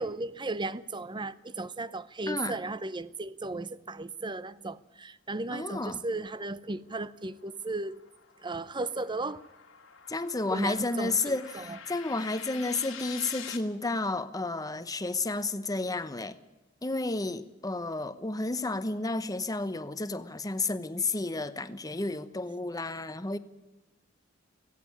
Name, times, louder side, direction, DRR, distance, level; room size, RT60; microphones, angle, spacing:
voice 1, 0.0-8.0 8.4-9.4 10.5-11.8, right 2 dB, 25° right, 0.7 m, -35 dB
voice 2, 2.3-2.6 5.5-6.0 10.1-16.4 16.8-23.4, left 2 dB, 20° left, 0.9 m, -32 dB
sound 1, 6.7-13.6, left 8 dB, 85° left, 2.1 m, -47 dB
17.0 x 16.0 x 9.8 m
head